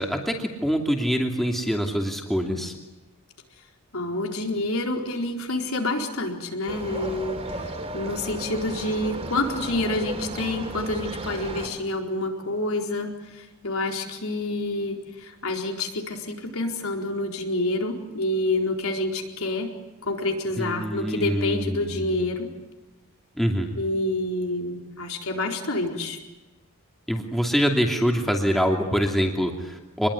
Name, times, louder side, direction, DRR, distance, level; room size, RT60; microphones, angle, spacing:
voice 1, 0.0-2.7 20.6-22.1 23.4-23.8 27.1-30.1, equal, ahead, 1 dB, 2.7 m, -25 dB
voice 2, 3.9-7.6 7.9-19.7 20.0-22.5 23.8-26.2, left 2 dB, 70° left, 2 dB, 4.3 m, -28 dB
sound 1, 6.7-11.7, right 1 dB, 30° right, 3.6 m, -34 dB
27.0 x 21.5 x 9.9 m, 1.1 s
head